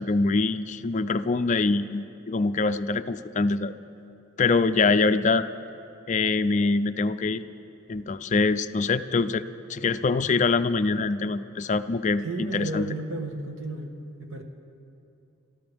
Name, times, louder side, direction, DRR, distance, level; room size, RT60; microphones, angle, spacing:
voice 1, 0.0-3.7 4.4-5.4 6.1-7.4 7.9-9.4 9.7-13.0, left 3 dB, 35° left, 11 dB, 0.4 m, -24 dB
voice 2, 12.2-13.9 14.2-14.4, right 2 dB, 75° right, 4 dB, 1.3 m, -33 dB
27.0 x 13.5 x 3.5 m, 2.8 s
head